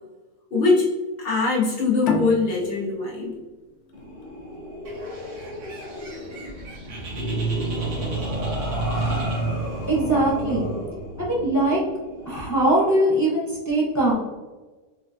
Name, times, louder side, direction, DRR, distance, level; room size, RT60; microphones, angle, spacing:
voice 1, 0.5-0.9 1.2-3.4, left 3 dB, 40° left, -5 dB, 1.1 m, -22 dB
sound 1, 2.0-5.3, left 4 dB, 85° left, 0.5 m, -31 dB
sound 2, 3.9-12.9, right 1 dB, 35° right, 0.8 m, -30 dB
Bird, 4.8-9.9, right 2 dB, 55° right, 1.0 m, -41 dB
voice 2, 9.9-10.7 11.2-11.8 12.3-14.1, right 1 dB, 25° left, -7 dB, 0.4 m, -21 dB
4.1 x 2.3 x 2.6 m, 1.3 s
omnidirectional pair, 1.7 m